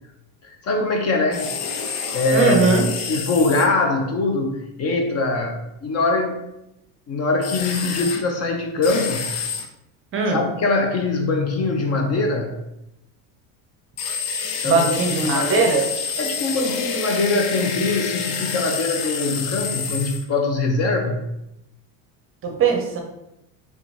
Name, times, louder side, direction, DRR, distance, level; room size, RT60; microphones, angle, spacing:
voice 1, 0.4-1.5 2.1-2.8 3.1-6.4 7.1-9.3 10.3-12.6 14.5-14.9 15.2-15.7 16.2-21.2, left 3 dB, 40° left, 3 dB, 0.6 m, -22 dB
sound 1, 1.3-3.7 7.4-8.2 8.8-9.6 14.0-20.2, left 6 dB, 70° left, 0.7 m, -28 dB
voice 2, 2.3-2.9 10.1-10.4 14.6-15.9 22.4-23.0, right 4 dB, 30° right, 3 dB, 0.7 m, -19 dB
3.8 x 3.5 x 3.1 m, 0.87 s
cardioid pair, 130°, 41 cm